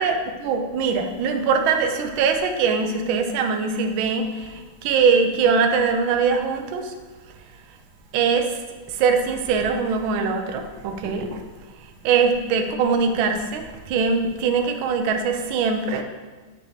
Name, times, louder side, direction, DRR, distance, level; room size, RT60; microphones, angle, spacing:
voice 1, 0.0-6.9 8.1-8.6 8.9-11.4 12.0-16.0, right 5 dB, 75° right, 5 dB, 1.4 m, -22 dB
7.8 x 6.5 x 2.8 m, 1.3 s
omnidirectional pair, 2.4 m